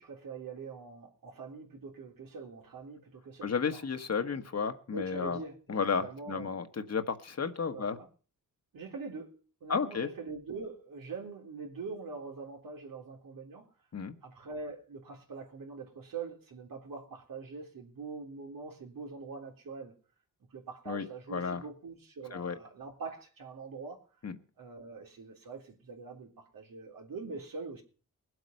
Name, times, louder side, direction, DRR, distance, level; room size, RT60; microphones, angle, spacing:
voice 1, 0.0-3.8 4.9-6.6 7.7-8.1 8.7-13.7 14.2-19.9 20.5-24.0 24.6-27.8, right 4 dB, 80° right, 3.7 m, -43 dB
voice 2, 3.4-5.4 5.7-8.0 9.7-10.1 13.9-14.1 20.9-21.0 21.3-21.6 22.3-22.6 24.2-24.4, left 5 dB, 50° left, 1.5 m, -32 dB
21.0 x 8.0 x 5.4 m
cardioid pair, 85°, 34 cm